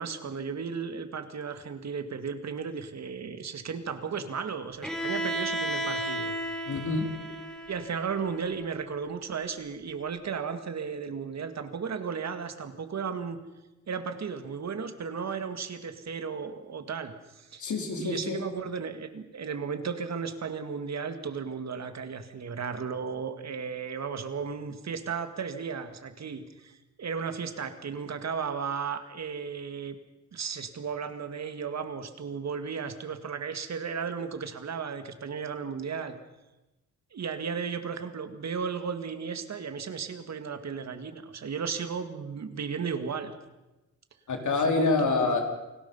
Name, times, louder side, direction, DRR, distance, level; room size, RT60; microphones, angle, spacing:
voice 1, 0.0-6.3 7.7-13.4 13.9-17.7 18.0-30.0 30.3-36.1 37.1-43.3 44.6-45.4, right 6 dB, 65° right, 9 dB, 2.1 m, -35 dB
Bowed string instrument, 4.8-8.7, right 1 dB, ahead, 3.0 m, -34 dB
voice 2, 6.7-7.1 17.6-18.4 44.3-45.4, left 3 dB, 85° left, 3 dB, 4.1 m, -26 dB
28.5 x 19.0 x 5.6 m, 1.0 s
wide cardioid pair, 125°, 29 cm